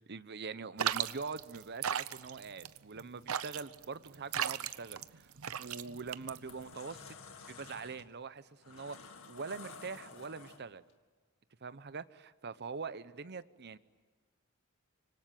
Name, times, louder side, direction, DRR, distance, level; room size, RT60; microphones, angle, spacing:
voice 1, 0.1-5.3 5.6-7.2 7.5-9.0 9.3-10.8 11.6-13.8, right 4 dB, 55° right, 15 dB, 0.8 m, -43 dB
sound 1, 0.8-6.7, right 9 dB, 90° right, 0.8 m, -37 dB
sound 2, 5.5-5.8 6.2-10.9, left 4 dB, 75° left, 2.2 m, -52 dB
26.0 x 24.5 x 9.2 m, 1.4 s
head